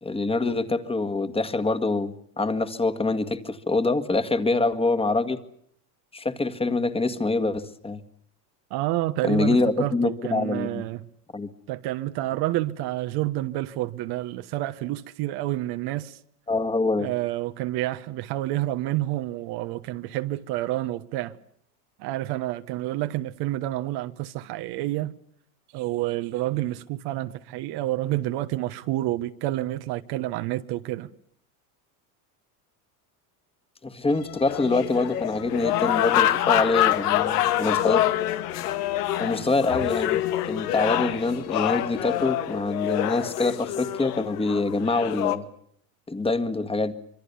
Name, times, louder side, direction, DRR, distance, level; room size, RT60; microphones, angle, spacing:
voice 1, 0.0-5.4 6.1-8.0 9.2-10.8 11.3-11.5 16.5-17.1 33.8-38.0 39.2-45.4 46.1-46.9, left 3 dB, 10° left, 1.9 m, -25 dB
voice 2, 8.7-11.1 11.7-16.2 17.0-21.4 22.0-25.1 25.7-31.1, right 16 dB, 55° right, 1.4 m, -29 dB
sound 1, 34.1-42.3, left 13 dB, 55° left, 2.8 m, -40 dB
sound 2, 34.5-45.4, left 13 dB, 85° left, 2.0 m, -26 dB
26.5 x 23.0 x 7.0 m
supercardioid pair, 115°, 45 cm